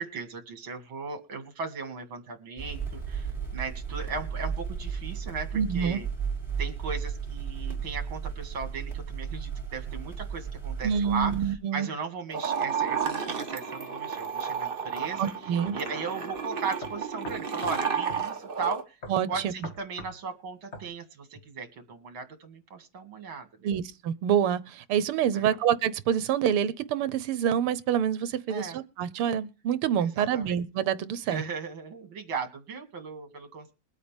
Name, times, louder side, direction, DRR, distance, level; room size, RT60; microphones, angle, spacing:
voice 1, 0.0-6.1 6.6-15.3 15.7-19.0 19.3-23.7 25.3-25.6 28.5-28.8 30.0-30.6 31.3-33.7, right 5 dB, 65° right, 3.0 m, -37 dB
sound 1, 2.6-11.5, right 6 dB, ahead, 5.8 m, -34 dB
voice 2, 5.5-6.0 10.8-11.9 15.2-15.8 19.1-19.5 23.6-31.4, right 9 dB, 80° right, 1.8 m, -27 dB
sound 2, 12.3-18.8, right 6 dB, 30° right, 1.3 m, -32 dB
sound 3, 15.6-15.8 16.3-16.4 16.8-17.8 18.1-18.3 19.0-20.2 20.7-20.9, left 1 dB, 30° left, 2.2 m, -42 dB
22.0 x 8.5 x 3.4 m
omnidirectional pair, 2.4 m